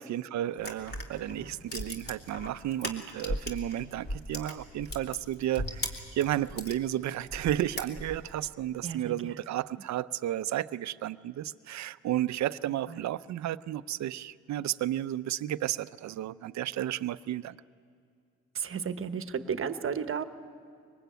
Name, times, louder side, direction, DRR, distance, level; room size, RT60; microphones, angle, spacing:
voice 1, 0.0-17.6, right 12 dB, 65° right, 15 dB, 0.7 m, -33 dB
sound 1, 0.6-3.7 4.0-6.8 7.3-8.4, left 1 dB, 35° left, 3.1 m, -37 dB
voice 2, 8.8-9.1 12.9-13.0 18.5-20.2, right 7 dB, 45° right, 10 dB, 1.2 m, -33 dB
24.0 x 19.5 x 9.2 m, 2.4 s
cardioid pair, 90°, 30 cm